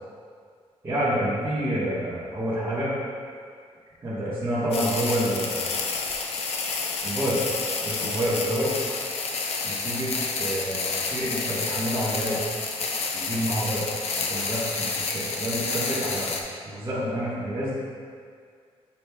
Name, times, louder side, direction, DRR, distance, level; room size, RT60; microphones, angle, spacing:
voice 1, 0.8-2.9 4.0-5.7 7.0-7.5 7.8-8.7 9.6-12.5 13.1-13.9 14.3-16.3 16.6-17.7, equal, 25° right, -13 dB, 1.4 m, -28 dB
sound 1, 4.7-16.4, left 4 dB, 75° left, 0.6 m, -29 dB
8.6 x 5.1 x 2.3 m, 2.1 s
wide cardioid pair, 150°, 11 cm